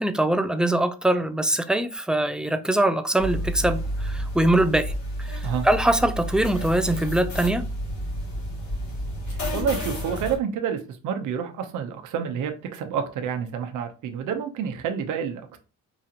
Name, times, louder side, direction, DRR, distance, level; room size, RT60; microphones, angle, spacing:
voice 1, 0.0-4.9 5.2-7.7, right 1 dB, 5° right, 0.4 m, -23 dB
sound 1, 3.2-10.4, equal, 70° left, 2.1 m, -30 dB
voice 2, 9.3-15.6, right 7 dB, 80° right, 0.8 m, -29 dB
4.9 x 2.5 x 2.8 m
cardioid pair, 90°, 30 cm